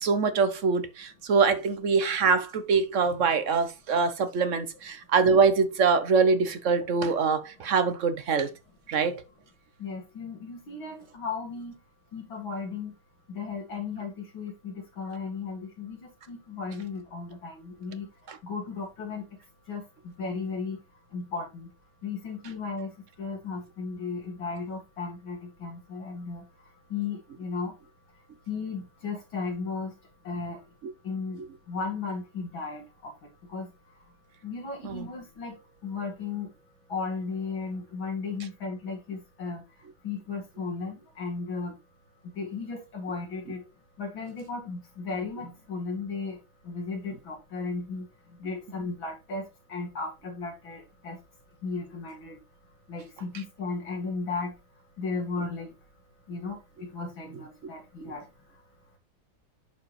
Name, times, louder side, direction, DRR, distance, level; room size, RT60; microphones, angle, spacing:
voice 1, 0.0-8.5 8.9-9.2 18.3-18.4 34.8-35.1, right 5 dB, 55° right, 0.9 m, -24 dB
voice 2, 9.8-11.7 12.1-12.9 13.3-18.1 18.4-19.2 19.7-19.8 20.2-20.8 21.1-21.7 22.0-22.9 23.2-26.4 26.9-27.7 28.5-29.9 30.2-30.6 31.0-31.4 31.7-32.8 33.5-33.7 34.4-35.5 35.8-36.5 36.9-39.6 40.0-41.7 42.4-43.6 44.0-46.4 46.7-48.1 48.4-51.2 51.6-52.4 52.9-54.5 55.0-55.7 56.3-58.2, left 4 dB, 70° left, 2.9 m, -35 dB
10.5 x 4.6 x 3.1 m
omnidirectional pair, 2.3 m